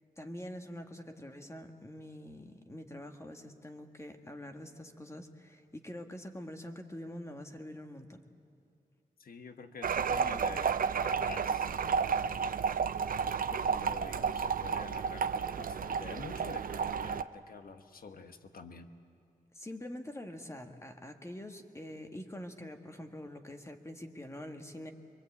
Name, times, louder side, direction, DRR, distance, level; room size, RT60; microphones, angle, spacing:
voice 1, 0.2-8.2 19.5-24.9, left 1 dB, 20° left, 5 dB, 1.5 m, -45 dB
voice 2, 9.2-12.3 13.2-18.9, left 4 dB, 75° left, 8 dB, 1.3 m, -48 dB
sound 1, 9.8-17.2, right 6 dB, 70° right, 0.5 m, -32 dB
23.5 x 23.0 x 8.4 m, 2.4 s
wide cardioid pair, 90°, 15 cm